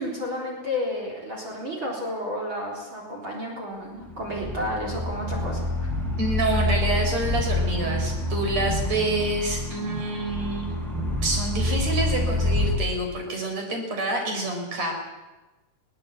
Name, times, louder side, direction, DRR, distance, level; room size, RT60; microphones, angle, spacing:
voice 1, 0.0-5.7, left 1 dB, 35° right, -2 dB, 4.5 m, -31 dB
sound 1, 4.0-12.8, left 1 dB, ahead, 4.3 m, -27 dB
voice 2, 6.2-10.7 11.2-14.9, right 2 dB, 50° right, 3 dB, 5.5 m, -27 dB
21.5 x 17.5 x 8.4 m, 1.1 s
omnidirectional pair, 3.9 m